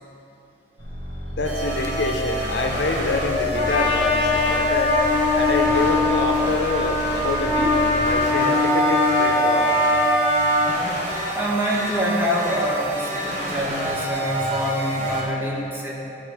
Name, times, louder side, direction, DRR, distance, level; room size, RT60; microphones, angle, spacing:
sound 1, 0.8-8.2, equal, 85° right, 1.3 m, -34 dB
voice 1, 1.3-5.0 5.3-7.8 8.0-9.7, left 3 dB, 70° left, 3 dB, 0.6 m, -26 dB
sound 2, 1.4-15.2, equal, 45° right, 1.1 m, -27 dB
Trumpet, 3.5-10.7, left 2 dB, 30° left, 1.4 m, -21 dB
voice 2, 11.4-15.9, equal, 10° right, -4 dB, 0.9 m, -25 dB
9.7 x 3.8 x 4.7 m, 2.7 s
head